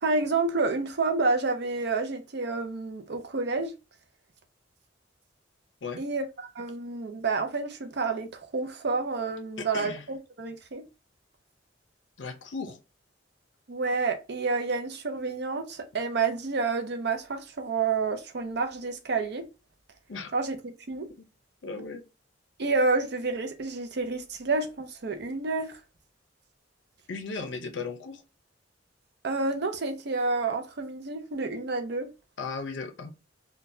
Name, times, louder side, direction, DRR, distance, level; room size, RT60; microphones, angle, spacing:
voice 1, 0.0-3.7 6.0-10.8 13.7-19.5 20.3-21.1 22.6-25.8 29.2-32.1, right 3 dB, 65° right, 0.6 m, -29 dB
voice 2, 9.6-10.0 12.2-12.8 20.1-20.3 21.2-21.3 21.6-22.0 27.1-28.2 32.4-33.1, left 4 dB, 75° left, 0.7 m, -36 dB
3.8 x 2.3 x 2.6 m
head